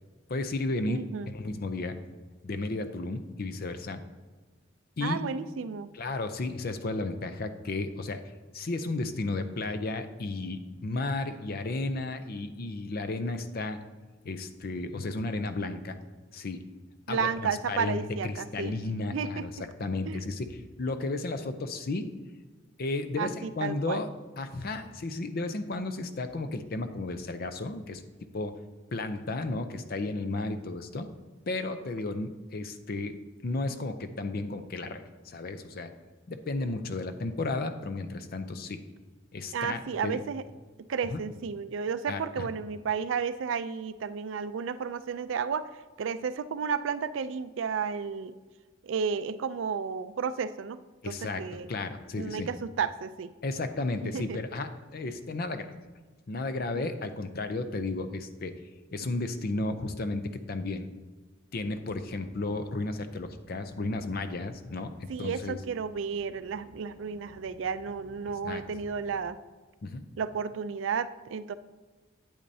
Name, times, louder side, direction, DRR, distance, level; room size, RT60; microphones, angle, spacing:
voice 1, 0.3-1.9 2.4-4.0 5.0-5.2 5.9-8.2 8.5-13.8 14.2-16.0 16.3-16.6 17.1-19.5 19.8-22.1 22.8-24.1 24.4-28.0 28.3-28.5 28.9-31.1 31.5-33.2 33.4-35.9 36.3-38.8 39.3-40.2 41.1-41.2 42.1-42.5 51.0-52.5 53.4-55.7 56.3-58.6 58.9-60.9 61.5-65.6 68.4-68.6 69.8-70.0, left 2 dB, 50° left, 10 dB, 0.5 m, -33 dB
voice 2, 0.9-1.3 5.0-5.9 17.1-18.7 19.1-19.5 20.1-20.2 23.2-24.0 39.5-40.4 40.9-45.7 46.0-48.3 48.8-51.7 52.2-53.3 54.1-54.4 56.7-57.0 65.1-69.4 70.2-71.5, right 6 dB, 70° right, 14 dB, 0.4 m, -32 dB
sound 1, 61.5-69.3, equal, 15° left, 2.3 m, -56 dB
8.7 x 8.5 x 2.7 m, 1.3 s
head